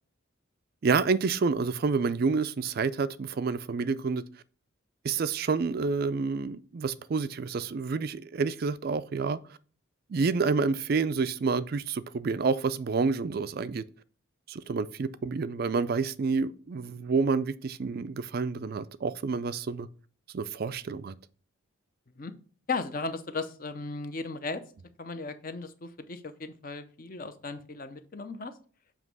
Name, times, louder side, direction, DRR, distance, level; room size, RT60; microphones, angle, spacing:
voice 1, 0.8-4.2 5.0-9.4 10.1-13.8 14.5-19.9 20.3-21.2, right 4 dB, 45° right, 0.3 m, -28 dB
voice 2, 22.7-24.6 25.0-28.5, left 3 dB, 40° left, 0.6 m, -36 dB
7.3 x 3.0 x 6.0 m
head